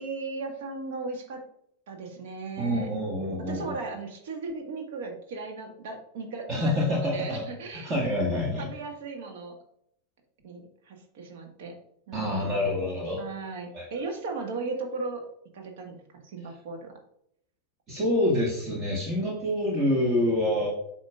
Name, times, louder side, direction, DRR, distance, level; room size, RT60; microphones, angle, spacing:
voice 1, 0.0-1.4 1.9-2.9 3.5-7.9 8.6-9.5 10.4-11.8 12.1-12.9 13.2-15.2 15.5-16.9, right 3 dB, 55° right, 3 dB, 1.6 m, -37 dB
voice 2, 2.6-3.7 6.5-7.4 7.7-8.7 12.1-13.2 13.7-13.9 17.9-20.7, left 1 dB, 30° right, -3 dB, 1.8 m, -27 dB
9.3 x 5.9 x 2.4 m, 0.72 s
figure-of-eight pair, 90°, 0 cm